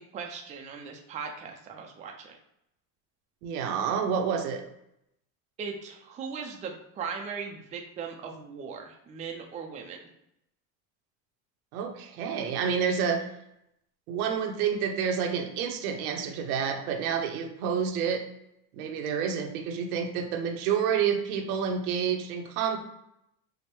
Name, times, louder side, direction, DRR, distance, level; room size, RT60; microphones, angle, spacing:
voice 1, 0.0-2.4 5.6-10.0, right 5 dB, 20° right, 2 dB, 0.4 m, -38 dB
voice 2, 3.4-4.6 11.7-13.3 14.1-18.2 18.7-22.8, right 7 dB, 85° right, 3 dB, 0.8 m, -29 dB
4.9 x 2.1 x 3.0 m, 0.81 s
supercardioid pair, 120°, 43 cm